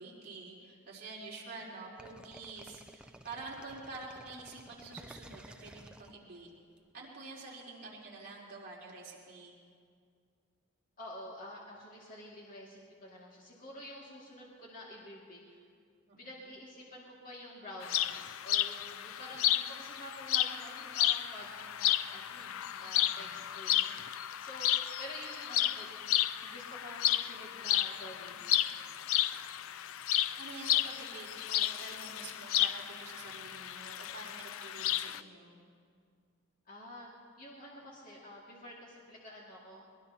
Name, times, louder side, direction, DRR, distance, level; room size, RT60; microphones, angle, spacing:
voice 1, 0.0-6.5 6.9-9.6 16.1-16.2 22.8-23.3 30.4-35.6, right 3 dB, 45° right, -6 dB, 3.8 m, -48 dB
sound 1, 2.0-6.8, right 1 dB, 5° right, 0.4 m, -53 dB
voice 2, 11.0-15.6 16.2-24.7 25.0-26.1 26.4-28.4 36.7-37.1 37.4-39.9, left 1 dB, 40° left, -5 dB, 2.3 m, -49 dB
sound 2, 17.8-35.2, left 12 dB, 70° left, 0.4 m, -32 dB
22.0 x 21.5 x 2.9 m, 2.2 s
head